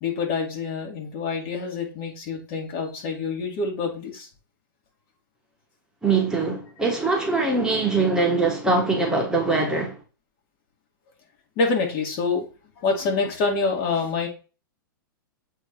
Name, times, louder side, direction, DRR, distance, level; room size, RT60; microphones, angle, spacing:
voice 1, 0.0-4.3 11.6-12.4 12.8-14.3, left 4 dB, 45° left, 2.3 m, -26 dB
voice 2, 6.0-10.0, right 3 dB, 5° right, 1.0 m, -22 dB
7.7 x 2.7 x 4.6 m
hypercardioid pair, 135°, 12 cm